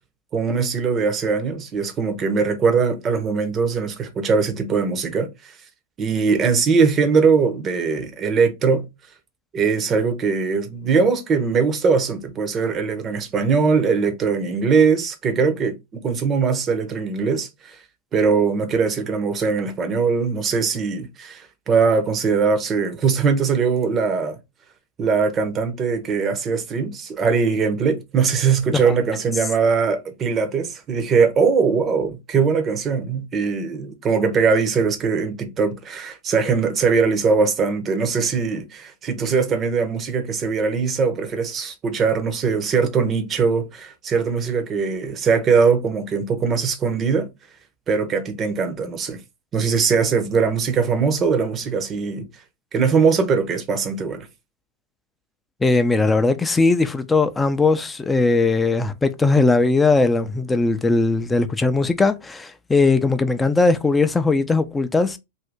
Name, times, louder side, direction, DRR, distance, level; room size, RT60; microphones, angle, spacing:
voice 1, 0.3-5.5 6.0-8.9 9.5-17.8 18.1-24.4 25.0-47.3 47.9-49.2 49.5-52.3 52.7-54.3, right 5 dB, 30° right, 0.8 m, -21 dB
voice 2, 55.6-65.2, left 3 dB, 10° left, 0.5 m, -19 dB
2.7 x 2.7 x 3.4 m
hypercardioid pair, 105°, 0 cm